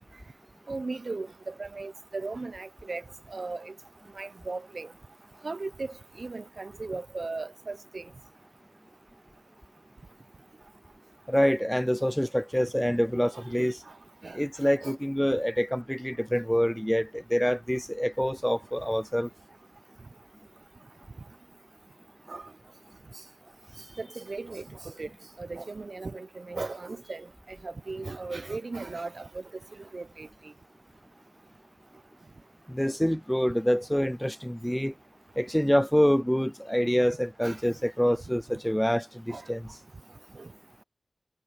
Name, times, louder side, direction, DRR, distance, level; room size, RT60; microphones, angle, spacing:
voice 1, 0.7-3.0 3.3-3.7 4.2-4.9 5.4-8.0 13.3-13.7 14.2-14.4 14.8-15.0 22.3-22.4 24.0-25.1 25.4-27.3 27.6-29.4 29.9-30.3 37.4-37.6 39.3-39.4 40.3-40.5, right 3 dB, 60° right, 0.8 m, -37 dB
voice 2, 11.3-13.8 14.3-19.3 32.7-34.9 35.4-39.7, equal, 5° left, 0.4 m, -26 dB
wide cardioid pair, 60°, 0 cm